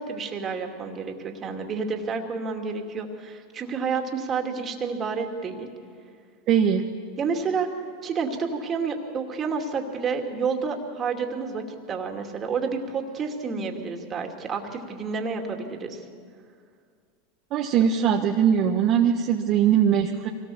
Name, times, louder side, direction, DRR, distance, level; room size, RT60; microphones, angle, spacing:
voice 1, 0.0-5.7 7.2-7.7 8.0-16.0, right 5 dB, 30° right, 3 dB, 2.5 m, -29 dB
voice 2, 6.5-6.8 17.5-20.3, right 8 dB, 50° right, 2 dB, 1.2 m, -21 dB
24.0 x 18.5 x 7.1 m, 2.2 s
hypercardioid pair, 105°, 0 cm